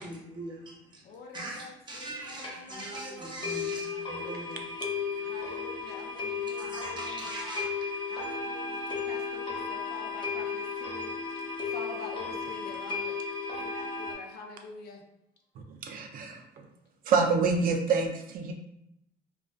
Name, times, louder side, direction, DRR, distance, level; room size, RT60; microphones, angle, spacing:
voice 1, 0.0-4.7 5.1-5.2 6.5-7.9, right 2 dB, 25° right, -3 dB, 0.8 m, -41 dB
voice 2, 1.0-3.6 5.2-7.4 8.1-13.2 13.6-15.0, left 3 dB, 70° left, 2 dB, 0.5 m, -46 dB
sound 1, 2.1-2.2 2.4-2.5 2.9-3.0 3.4-14.1, left 5 dB, 30° left, 0.6 m, -34 dB
voice 3, 15.6-16.4 17.1-18.5, right 4 dB, 55° right, 4 dB, 0.4 m, -27 dB
2.5 x 2.3 x 2.2 m, 0.79 s
cardioid pair, 110°, 17 cm